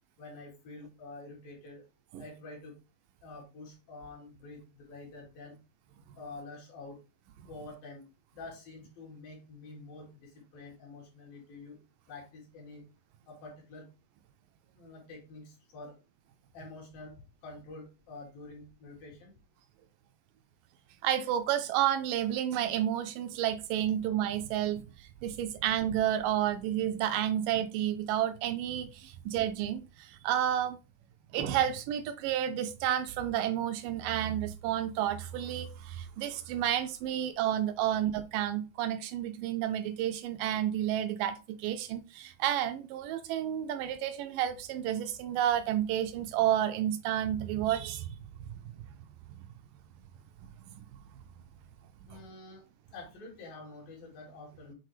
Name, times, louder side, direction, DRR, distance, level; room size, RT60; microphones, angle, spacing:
voice 1, 0.2-1.8 2.2-2.7 3.2-5.6 6.2-7.0 7.5-8.0 8.3-11.8 12.1-12.8 13.3-13.9 14.8-16.0 16.5-19.3 52.1-52.6 52.9-54.7, left 3 dB, 75° left, 3.9 m, -47 dB
voice 2, 21.0-30.8 31.3-48.2, right 11 dB, 80° right, 2.0 m, -31 dB
7.9 x 4.1 x 3.2 m
omnidirectional pair, 4.2 m